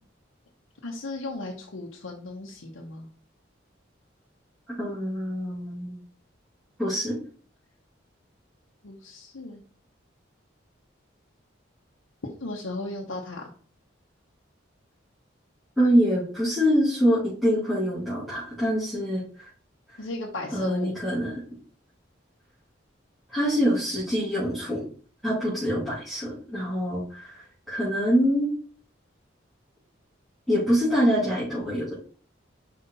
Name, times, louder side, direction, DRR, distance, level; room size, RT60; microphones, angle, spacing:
voice 1, 0.8-3.1 8.8-9.6 12.4-13.5 20.0-20.9, left 2 dB, 85° left, -1 dB, 1.0 m, -35 dB
voice 2, 4.8-5.9 6.8-7.2 15.8-19.5 20.5-21.3 23.3-24.8 25.2-28.5 30.5-31.9, equal, ahead, -12 dB, 2.7 m, -25 dB
5.5 x 4.8 x 4.1 m, 0.43 s
head